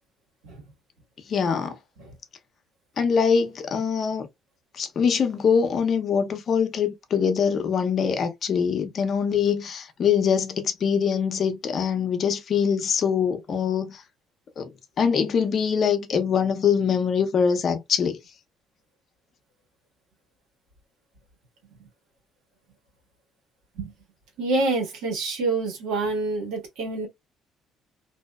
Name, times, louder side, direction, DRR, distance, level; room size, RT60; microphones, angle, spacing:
voice 1, 1.3-1.8 3.0-4.3 4.7-14.0 14.6-18.2, left 6 dB, 45° left, 0.6 m, -23 dB
voice 2, 24.4-27.1, right 3 dB, 90° right, 1.3 m, -27 dB
2.6 x 2.1 x 2.2 m
cardioid pair, 115°, 0 cm